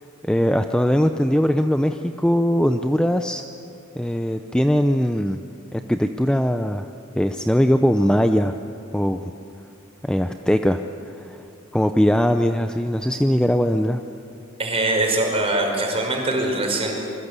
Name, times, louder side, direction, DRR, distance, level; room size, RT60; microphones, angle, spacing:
voice 1, 0.3-3.4 4.0-5.4 5.7-6.9 7.2-8.6 8.9-9.2 10.0-10.8 11.2-11.4 11.7-14.0, equal, 5° left, 7 dB, 0.6 m, -20 dB
voice 2, 14.6-16.9, right 2 dB, 30° right, 1 dB, 5.3 m, -22 dB
26.0 x 22.0 x 8.3 m, 2.8 s
head